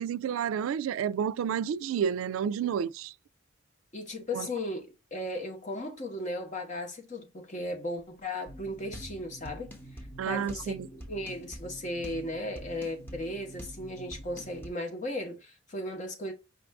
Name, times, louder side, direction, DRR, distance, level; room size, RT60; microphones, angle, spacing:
voice 1, 0.0-3.1 4.3-4.5 10.2-10.9, right 8 dB, 90° right, 0.3 m, -30 dB
voice 2, 3.9-9.7 10.2-16.3, left 1 dB, 40° left, 1.1 m, -36 dB
sound 1, 8.5-14.7, equal, 10° left, 0.9 m, -45 dB
5.2 x 2.5 x 3.4 m
head